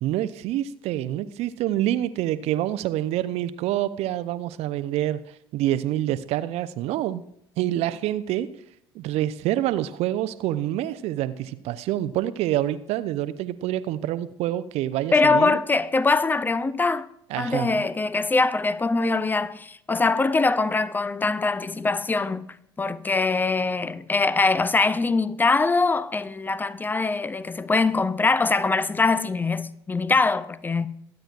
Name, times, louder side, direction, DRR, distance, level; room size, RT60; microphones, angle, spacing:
voice 1, 0.0-5.2 5.5-7.2 7.6-8.5 8.9-15.6 17.3-17.8, right 13 dB, 55° right, 0.6 m, -27 dB
voice 2, 15.1-17.1 17.4-22.5 22.8-30.9, left 3 dB, 15° left, 0.5 m, -23 dB
23.0 x 8.9 x 2.4 m
figure-of-eight pair, 60°, 13 cm